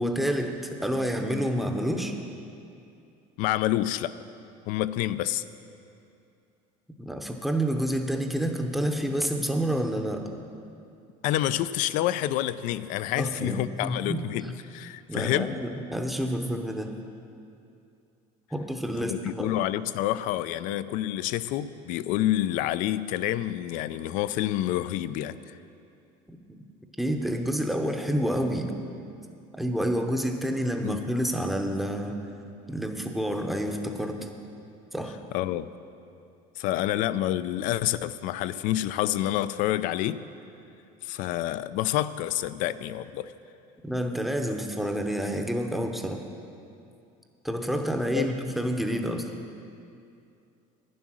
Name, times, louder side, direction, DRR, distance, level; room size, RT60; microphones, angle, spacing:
voice 1, 0.0-2.2 7.0-10.3 13.2-14.5 15.1-16.9 18.5-19.5 26.3-26.6 27.0-28.7 29.5-32.2 32.7-34.3 34.9-35.2 43.8-46.2 47.4-49.3, equal, ahead, 4 dB, 0.7 m, -29 dB
voice 2, 3.4-4.1 4.7-5.4 11.2-15.6 19.0-25.5 30.8-31.0 35.3-35.7 36.6-40.2 41.0-43.3 48.1-48.3, left 13 dB, 60° left, 15 dB, 0.4 m, -28 dB
11.0 x 10.5 x 6.2 m, 2.6 s
cardioid pair, 155°, 16 cm